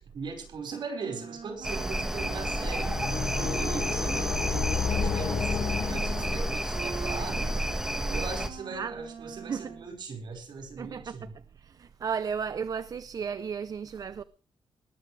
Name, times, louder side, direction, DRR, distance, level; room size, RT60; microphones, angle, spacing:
voice 1, 0.0-2.9 3.3-11.3, right 4 dB, 60° right, 5.2 m, -39 dB
Wind instrument woodwind instrument, 1.0-9.9, right 7 dB, 75° right, 2.7 m, -44 dB
sound 1, 1.6-8.5, right 1 dB, 5° right, 1.5 m, -30 dB
sound 2, 2.3-6.9, left 7 dB, 45° left, 0.7 m, -32 dB
voice 2, 10.8-11.3 11.5-14.2, right 6 dB, 45° right, 0.6 m, -34 dB
20.5 x 14.0 x 3.3 m
wide cardioid pair, 150°, 9 cm